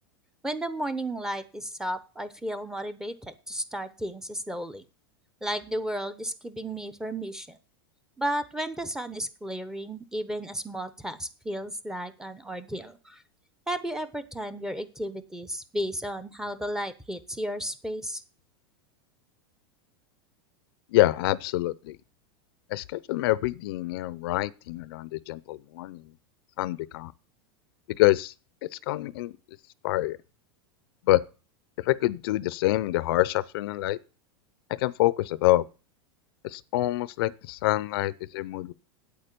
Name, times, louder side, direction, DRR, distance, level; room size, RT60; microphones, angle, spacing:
voice 1, 0.4-4.8 5.4-7.6 8.2-13.2 13.7-18.2, right 1 dB, 5° right, 0.8 m, -33 dB
voice 2, 20.9-22.0 22.7-26.0 26.6-27.1 28.0-28.3 28.6-29.3 29.8-30.2 31.1-31.2 31.8-34.0 34.7-35.7 36.4-38.7, left 17 dB, 65° left, 0.6 m, -26 dB
8.7 x 8.5 x 6.8 m
supercardioid pair, 140°, 13 cm